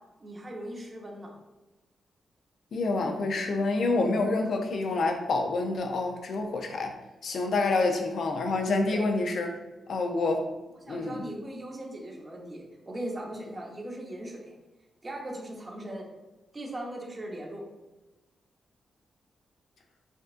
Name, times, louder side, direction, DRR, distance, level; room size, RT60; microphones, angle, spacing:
voice 1, 0.2-1.3 8.9-9.0 10.8-14.5 15.0-16.1 16.5-17.6, right 1 dB, 30° right, -1 dB, 0.9 m, -39 dB
voice 2, 2.7-7.0 7.2-9.5 9.9-10.5 10.9-11.2, left 3 dB, 65° left, 4 dB, 0.5 m, -27 dB
5.1 x 2.4 x 2.5 m, 1.1 s
cardioid pair, 85°, 0 cm